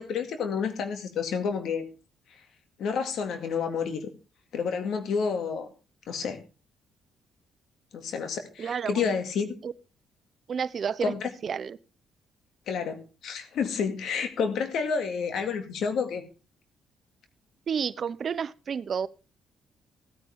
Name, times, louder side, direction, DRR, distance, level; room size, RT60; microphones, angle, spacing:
voice 1, 0.0-1.9 2.8-4.1 4.5-5.7 6.1-6.4 7.9-9.5 11.0-11.3 12.7-13.0 13.2-16.2, left 6 dB, 75° left, 7 dB, 2.2 m, -29 dB
voice 2, 8.6-9.1 9.6-9.7 10.5-11.1 11.4-11.8 17.7-19.1, right 7 dB, 50° right, 16 dB, 0.7 m, -30 dB
16.0 x 9.8 x 3.6 m, 0.34 s
cardioid pair, 90°, 0 cm